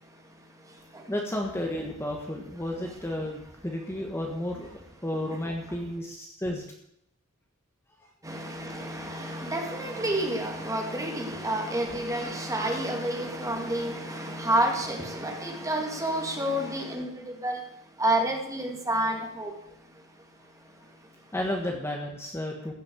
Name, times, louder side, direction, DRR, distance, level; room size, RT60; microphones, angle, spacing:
voice 1, 1.1-4.7 5.0-6.6 21.3-22.7, left 1 dB, 10° left, 1 dB, 1.5 m, -32 dB
voice 2, 8.2-17.1 17.4-17.6 18.0-19.5, right 1 dB, 15° right, 2 dB, 2.2 m, -29 dB
15.5 x 6.6 x 8.1 m, 0.74 s
head